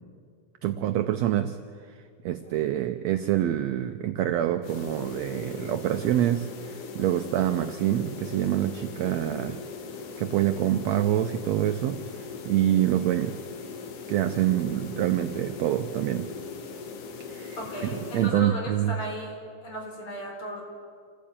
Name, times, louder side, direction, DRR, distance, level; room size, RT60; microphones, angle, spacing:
voice 1, 0.6-1.6 2.2-9.6 10.2-13.4 14.1-16.3 17.3-17.6 18.1-18.9, right 12 dB, 75° right, 8 dB, 1.6 m, -26 dB
sound 1, 4.6-18.3, left 5 dB, 75° left, 3.1 m, -40 dB
voice 2, 17.6-20.6, equal, 40° left, 0 dB, 5.0 m, -36 dB
27.0 x 15.5 x 8.7 m, 2.2 s
omnidirectional pair, 3.7 m